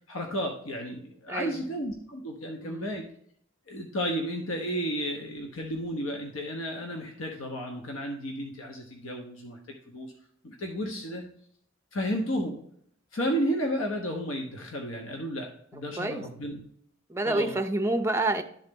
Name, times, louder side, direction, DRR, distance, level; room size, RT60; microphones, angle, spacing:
voice 1, 0.1-3.0 3.7-10.1 10.4-11.2 11.9-12.6 13.1-16.6 17.2-17.6, equal, 80° left, 2 dB, 1.0 m, -32 dB
voice 2, 1.3-1.7 2.6-2.9 16.0-16.3 17.1-18.4, right 2 dB, 15° right, 6 dB, 0.6 m, -28 dB
11.5 x 3.9 x 3.7 m, 0.66 s
head